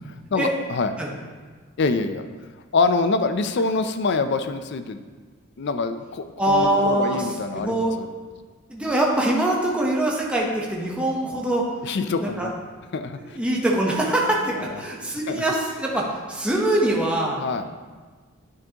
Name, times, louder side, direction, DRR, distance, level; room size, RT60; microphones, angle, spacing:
voice 1, 0.3-0.9 1.8-2.2 2.7-5.0 5.6-8.1 11.8-12.5 12.9-13.4 14.6-14.8 15.3-15.4 17.4-17.7, left 3 dB, 55° left, 9 dB, 0.4 m, -25 dB
voice 2, 6.4-7.9 8.7-11.7 12.2-12.5 13.2-17.4, right 1 dB, 5° right, -3 dB, 0.9 m, -23 dB
9.3 x 6.0 x 2.9 m, 1.4 s
head